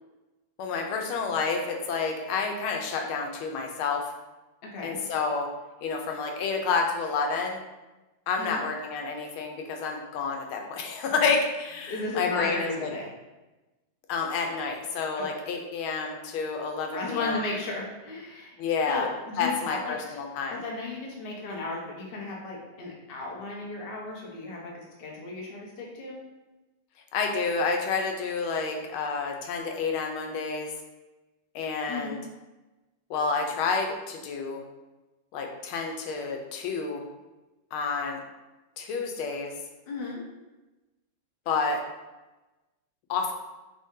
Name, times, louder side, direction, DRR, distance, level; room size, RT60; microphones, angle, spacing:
voice 1, 0.6-4.1 4.8-5.5 5.8-7.6 8.3-12.9 14.1-17.5 18.6-19.0 19.4-20.6 27.1-30.7 31.5-32.2 33.1-34.6 35.3-37.0 37.7-38.2 38.8-39.5 41.5-41.8 43.1-43.3, left 4 dB, 90° left, 2 dB, 1.5 m, -29 dB
voice 2, 4.6-5.0 8.4-8.6 11.9-13.1 15.2-15.3 16.9-18.6 18.8-20.1 20.5-26.2 31.9-32.2 39.9-40.2, left 3 dB, 75° left, -2 dB, 0.5 m, -35 dB
4.0 x 2.6 x 3.6 m, 1.1 s
omnidirectional pair, 2.2 m